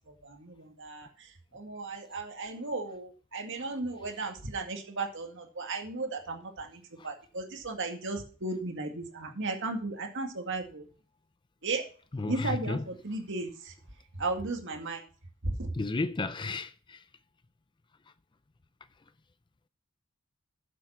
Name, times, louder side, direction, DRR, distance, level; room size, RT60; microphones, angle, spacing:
voice 1, 0.1-10.9 11.6-11.8 12.3-13.7 14.2-15.0 15.4-15.7, right 3 dB, 60° right, 2.1 m, -35 dB
voice 2, 12.1-12.8 15.7-17.0, left 3 dB, 20° left, 0.4 m, -33 dB
8.5 x 7.5 x 6.0 m
head